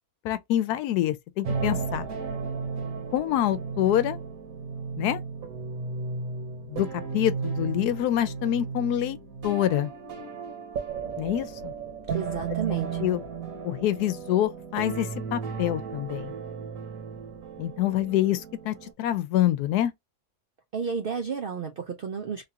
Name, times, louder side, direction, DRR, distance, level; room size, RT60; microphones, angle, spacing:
voice 1, 0.2-2.1 3.1-4.2 5.0-5.2 6.7-6.9 7.1-9.2 9.4-9.9 11.2-11.7 13.0-13.2 13.6-16.3 17.6-19.9, left 12 dB, 85° left, 1.1 m, -26 dB
sound 1, 1.4-18.9, right 5 dB, 65° right, 1.3 m, -34 dB
voice 2, 12.1-13.0 20.7-22.4, right 6 dB, 85° right, 0.5 m, -32 dB
3.5 x 2.4 x 2.7 m
omnidirectional pair, 1.6 m